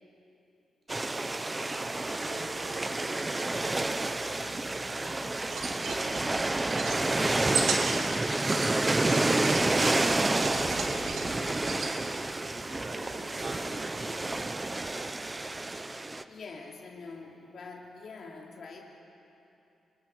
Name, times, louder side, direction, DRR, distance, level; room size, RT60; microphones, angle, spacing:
sound 1, 0.9-16.2, right 2 dB, 15° right, 0.6 m, -29 dB
voice 1, 1.3-6.1 6.5-12.1 12.5-14.9, right 2 dB, 40° right, -2 dB, 3.6 m, -47 dB
sound 2, 5.4-11.9, right 4 dB, 70° right, 2.6 m, -36 dB
voice 2, 16.3-18.8, left 4 dB, 50° left, -1 dB, 2.8 m, -45 dB
28.5 x 25.0 x 4.6 m, 2.8 s
wide cardioid pair, 170°, 0 cm